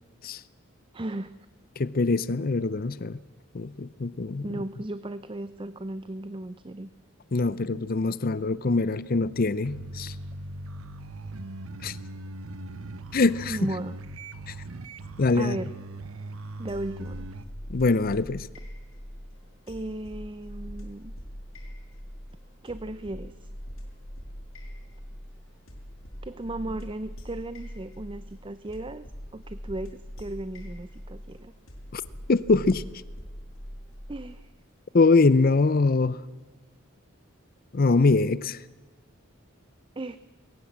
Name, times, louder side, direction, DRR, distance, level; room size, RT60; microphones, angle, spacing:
voice 1, 0.9-1.3 4.4-6.9 13.5-14.0 15.3-15.7 16.6-17.3 19.7-21.1 22.6-23.5 26.2-29.1 29.3-31.5 34.1-34.5 40.0-40.2, right 1 dB, 25° right, 14 dB, 0.5 m, -36 dB
voice 2, 1.8-3.2 3.5-4.5 7.3-10.1 11.8-12.0 13.1-13.7 14.5-14.6 15.2-15.6 17.7-18.5 31.9-32.0 32.3-32.8 34.9-36.2 37.7-38.6, left 3 dB, 45° left, 18 dB, 0.6 m, -23 dB
sound 1, 9.6-17.4, right 2 dB, 75° right, 1.0 m, -40 dB
sound 2, 16.7-34.4, equal, 65° left, 5.7 m, -42 dB
21.0 x 18.5 x 7.4 m, 1.3 s
head